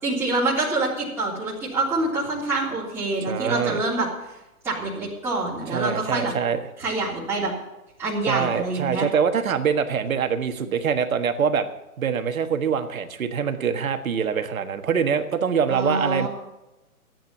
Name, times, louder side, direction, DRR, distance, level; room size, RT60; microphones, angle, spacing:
voice 1, 0.0-4.1 4.6-6.3 6.8-7.5 8.0-9.0 15.7-16.3, right 2 dB, 5° right, -9 dB, 3.4 m, -26 dB
voice 2, 3.2-3.8 5.7-6.7 8.3-11.7 12.0-16.3, right 6 dB, 65° right, 8 dB, 1.6 m, -24 dB
14.5 x 9.2 x 7.1 m, 0.99 s
hypercardioid pair, 155°, 45 cm